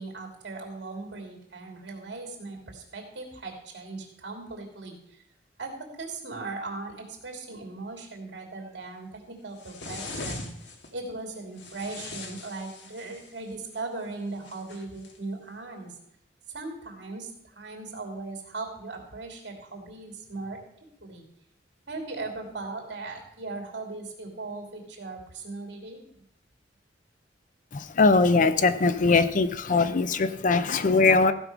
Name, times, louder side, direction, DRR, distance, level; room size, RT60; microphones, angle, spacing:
voice 1, 0.0-5.2 5.6-10.5 10.9-15.9 16.5-20.6 21.0-21.2 21.9-26.0, right 3 dB, 70° right, 1 dB, 3.0 m, -38 dB
sound 1, 9.6-10.9 11.6-13.4 14.4-15.2, left 2 dB, 75° left, 1.7 m, -40 dB
voice 2, 27.7-31.3, left 3 dB, 45° left, 12 dB, 0.6 m, -21 dB
15.0 x 5.4 x 6.1 m, 0.74 s
head